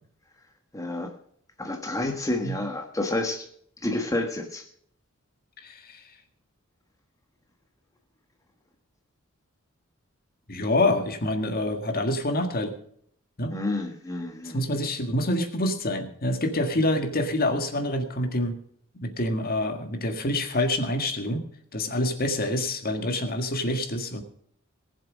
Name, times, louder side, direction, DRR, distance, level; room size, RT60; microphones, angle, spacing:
voice 1, 0.7-1.1 1.6-3.5 3.8-4.6 13.5-14.6, left 2 dB, 15° left, 3 dB, 1.4 m, -29 dB
voice 2, 5.6-6.0 10.5-12.8 13.4-13.5 14.5-18.5 19.0-21.4 21.7-24.2, left 1 dB, 45° left, 6 dB, 1.8 m, -26 dB
19.5 x 7.5 x 6.2 m, 0.65 s
head